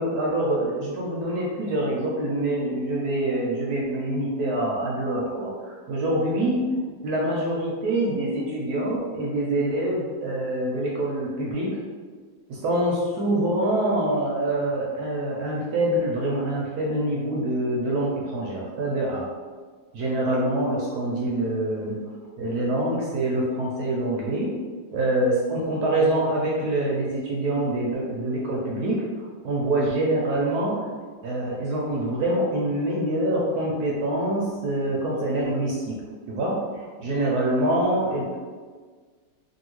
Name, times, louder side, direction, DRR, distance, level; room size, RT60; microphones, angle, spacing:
voice 1, 0.0-6.7 7.0-11.8 12.5-19.3 19.9-22.0 22.4-24.5 24.9-29.0 29.4-30.9 31.2-36.0 36.3-38.4, right 1 dB, 70° right, -4 dB, 1.0 m, -25 dB
2.8 x 2.7 x 3.0 m, 1.5 s
omnidirectional pair, 1.9 m